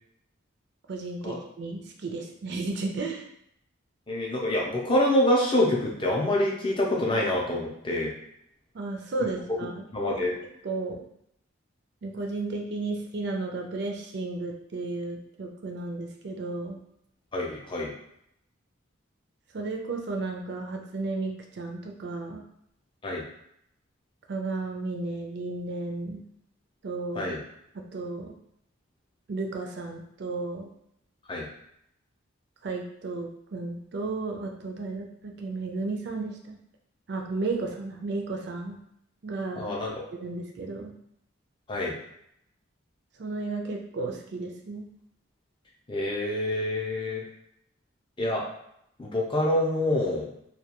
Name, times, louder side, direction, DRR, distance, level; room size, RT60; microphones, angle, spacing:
voice 1, 0.9-3.3 8.7-9.7 10.1-10.2 10.6-11.0 12.0-16.8 19.5-22.4 24.3-26.2 26.8-27.3 27.7-28.3 29.3-30.7 32.6-36.6 37.1-38.8 39.2-39.6 40.2-40.9 43.2-44.9, right 3 dB, 50° right, 2 dB, 0.4 m, -33 dB
voice 2, 4.1-8.1 9.9-10.3 17.3-17.9 23.0-23.2 27.1-27.4 31.3-31.5 39.6-40.0 41.7-41.9 45.9-47.2 48.2-48.4 49.0-50.3, left 1 dB, 25° left, -2 dB, 0.5 m, -26 dB
2.2 x 2.2 x 2.9 m, 0.74 s
head